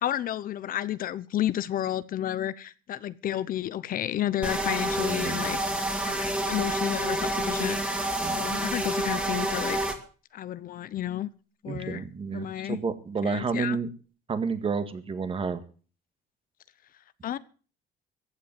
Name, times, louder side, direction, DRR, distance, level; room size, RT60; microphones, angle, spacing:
voice 1, 0.0-9.8 10.3-11.3 11.6-12.0 12.3-12.8 13.2-13.8 17.2-17.4, left 12 dB, 55° left, 0.8 m, -31 dB
sound 1, 4.4-9.9, right 1 dB, 5° right, 2.7 m, -28 dB
voice 2, 4.9-5.5 8.2-8.5 11.7-13.9 14.3-15.6, right 5 dB, 35° right, 1.8 m, -31 dB
15.0 x 8.6 x 7.6 m
cardioid pair, 110°, 17 cm